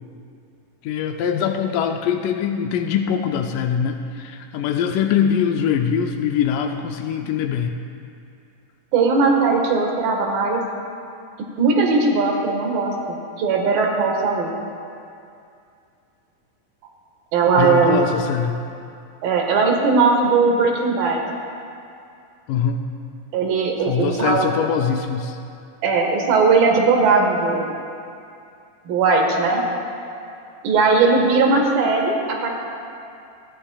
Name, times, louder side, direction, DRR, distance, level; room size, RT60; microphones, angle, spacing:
voice 1, 0.8-7.7 17.6-18.6 22.5-22.8 23.9-25.4, left 7 dB, 80° left, 3 dB, 1.9 m, -22 dB
voice 2, 8.9-10.6 11.6-14.5 17.3-18.1 19.2-21.2 23.3-24.5 25.8-27.7 28.9-29.6 30.6-32.5, right 4 dB, 75° right, 1 dB, 3.2 m, -18 dB
29.5 x 11.5 x 2.3 m, 2.5 s
omnidirectional pair, 4.3 m